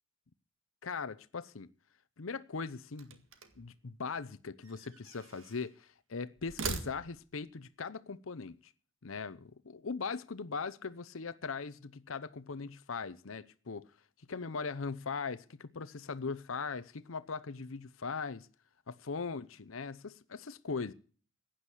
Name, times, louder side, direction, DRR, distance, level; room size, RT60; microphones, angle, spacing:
voice 1, 0.8-1.7 2.2-3.2 3.6-8.7 9.0-13.8 14.3-18.5 18.9-20.9, left 4 dB, 80° left, 0.8 m, -40 dB
sound 1, 3.0-3.7 4.6-5.7 6.4-7.4, right 4 dB, 70° right, 2.0 m, -42 dB
15.5 x 10.0 x 6.2 m
head